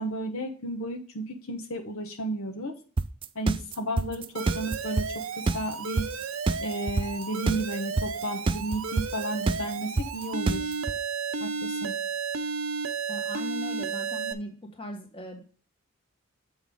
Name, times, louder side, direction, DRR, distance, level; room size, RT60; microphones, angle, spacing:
voice 1, 0.0-2.7 3.3-6.1 6.6-10.7 11.4-11.9, right 1 dB, 80° left, 3 dB, 1.2 m, -33 dB
sound 1, 3.0-10.9, right 3 dB, 25° right, 0.3 m, -26 dB
Alarm, 4.3-14.3, right 5 dB, 75° right, 0.8 m, -33 dB
voice 2, 13.1-15.4, left 1 dB, 25° left, 3 dB, 1.4 m, -39 dB
7.3 x 5.8 x 3.6 m, 0.40 s
head